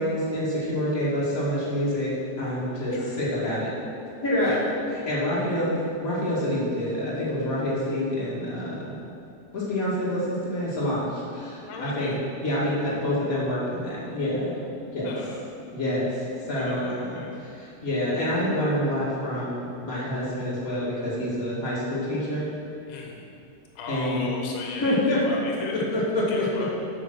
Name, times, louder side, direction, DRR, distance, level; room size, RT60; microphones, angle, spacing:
voice 1, 0.0-2.1 2.4-3.7 4.2-4.6 4.9-5.7 6.0-9.0 9.5-12.2 12.4-14.5 14.9-15.1 15.7-17.2 17.5-22.5 23.9-24.2 24.8-25.2 25.9-26.4, left 1 dB, 35° left, -8 dB, 1.4 m, -27 dB
voice 2, 2.9-3.2 4.4-4.7 11.7-12.2 15.0-15.4 16.5-17.3 22.9-23.3 23.8-25.8 26.3-26.7, left 4 dB, 65° left, 0 dB, 2.4 m, -37 dB
8.1 x 7.2 x 6.2 m, 2.5 s
omnidirectional pair, 4.9 m